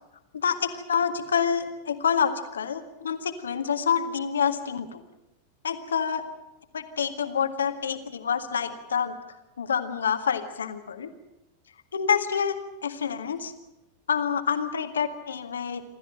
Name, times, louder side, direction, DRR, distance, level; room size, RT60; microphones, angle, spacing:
voice 1, 0.3-5.0 5.6-6.2 6.7-9.2 9.6-11.1 11.9-13.5 14.1-15.8, left 7 dB, 70° left, 9 dB, 1.8 m, -27 dB
27.0 x 13.5 x 9.0 m, 0.97 s
figure-of-eight pair, 90°, 0 cm